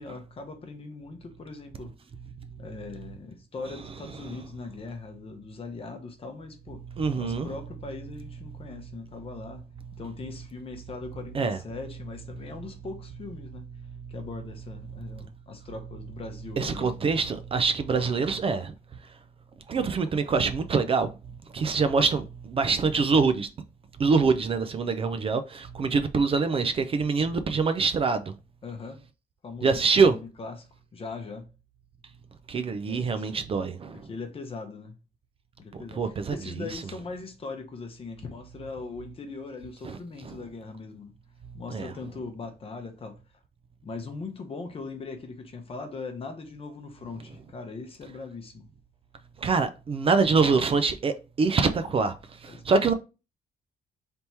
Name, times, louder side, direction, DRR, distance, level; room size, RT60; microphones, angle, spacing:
voice 1, 0.0-1.9 2.6-6.8 7.1-9.6 10.0-13.7 14.1-17.1 28.6-29.0 29.4-29.8 30.1-31.5 32.8-33.3 34.1-34.9 35.6-36.0 36.3-41.1 41.5-43.2 43.8-48.7 52.5-52.6, left 4 dB, 35° left, 0.7 m, -40 dB
voice 2, 7.0-7.5 11.3-11.6 14.9-15.3 16.6-18.7 19.7-21.1 21.5-23.5 24.0-28.3 29.6-30.2 32.5-34.1 35.7-36.8 39.8-40.4 41.7-41.9 49.4-52.9, right 4 dB, 35° right, 0.3 m, -25 dB
3.4 x 2.8 x 4.2 m
wide cardioid pair, 155°, 17 cm